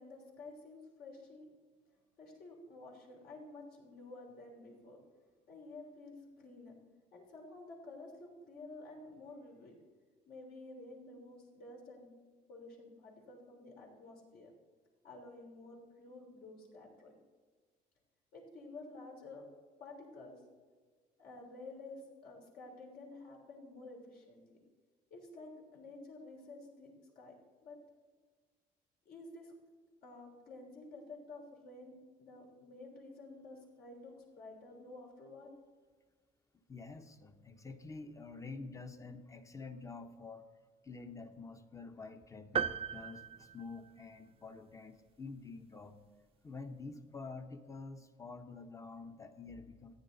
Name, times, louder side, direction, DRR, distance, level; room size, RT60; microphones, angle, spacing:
voice 1, 0.0-1.5 2.2-5.0 5.5-6.7 7.1-9.7 10.3-12.1 12.5-14.5 15.0-17.1 18.3-19.4 19.8-20.4 21.2-24.6 25.1-27.3 27.6-27.8 29.1-29.5 30.0-35.5, left 2 dB, 65° left, -1 dB, 3.5 m, -51 dB
voice 2, 36.7-40.4 40.8-46.0 46.4-50.0, left 4 dB, 20° left, 8 dB, 0.9 m, -48 dB
sound 1, 42.6-44.3, right 8 dB, 35° right, 0.4 m, -37 dB
14.5 x 9.5 x 4.0 m, 1.5 s
cardioid pair, 110°, 17 cm